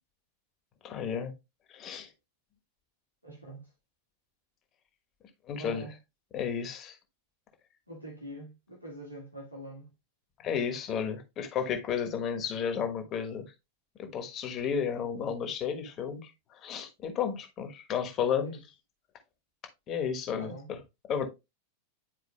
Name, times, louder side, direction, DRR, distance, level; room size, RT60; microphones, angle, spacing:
voice 1, 0.8-1.3 1.7-2.1 5.5-5.9 6.3-7.0 10.4-13.5 14.0-16.3 16.6-18.6 19.9-20.5 21.1-21.3, left 7 dB, 30° left, 1.4 m, -32 dB
voice 2, 3.2-3.7 5.5-6.0 7.9-9.9 18.4-18.6 20.4-20.7, right 1 dB, 90° right, 1.8 m, -44 dB
10.5 x 4.4 x 2.2 m
figure-of-eight pair, 90°, 0 cm